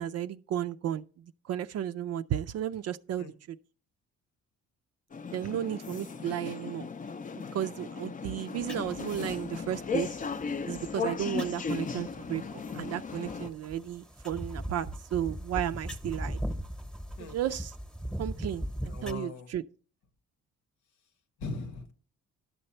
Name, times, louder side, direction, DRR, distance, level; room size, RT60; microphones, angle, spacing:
voice 1, 0.0-3.3 5.3-6.9 7.5-10.1 10.7-16.4 17.3-17.7 18.2-19.6, right 10 dB, 55° right, 0.4 m, -34 dB
sound 1, 5.1-13.5, left 5 dB, 25° left, 0.5 m, -36 dB
sound 2, 8.6-19.1, equal, ahead, 0.9 m, -40 dB
voice 2, 18.8-19.5 21.4-21.9, left 4 dB, 90° left, 1.3 m, -39 dB
11.5 x 6.7 x 4.3 m
cardioid pair, 90°, 30 cm